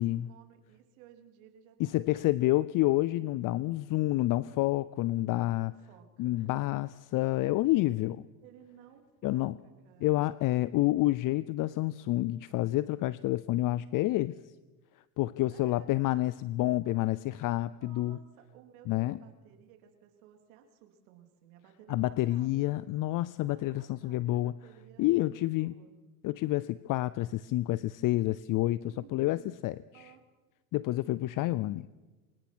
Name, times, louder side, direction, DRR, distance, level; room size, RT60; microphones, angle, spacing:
voice 1, 0.0-2.5 5.5-6.5 8.4-10.3 15.5-15.9 17.8-22.6 23.4-26.0 28.8-29.6 29.9-30.2, right 10 dB, 75° right, 5 dB, 3.6 m, -57 dB
voice 2, 1.8-5.7 6.2-8.2 9.2-9.5 10.0-14.4 15.2-18.2 18.9-19.2 21.9-24.5 25.0-25.8 26.2-30.0 30.7-31.9, left 17 dB, 50° left, 19 dB, 0.6 m, -29 dB
24.0 x 19.5 x 6.3 m, 1.2 s
supercardioid pair, 85°, 42 cm